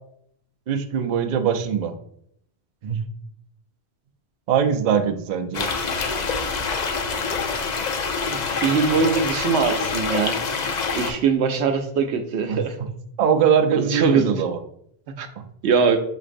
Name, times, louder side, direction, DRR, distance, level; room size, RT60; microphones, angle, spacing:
voice 1, 0.7-1.9 2.8-3.0 4.5-5.7 12.5-12.6 13.2-14.6 15.4-15.5, right 7 dB, 55° right, 7 dB, 0.5 m, -21 dB
sound 1, 5.5-11.1, left 4 dB, 50° left, 0.6 m, -26 dB
voice 2, 8.3-10.4 10.9-12.8 13.8-14.3 15.2-15.3 15.6-16.0, right 5 dB, 90° right, 6 dB, 0.9 m, -21 dB
6.0 x 3.2 x 2.5 m, 0.70 s
omnidirectional pair, 1.1 m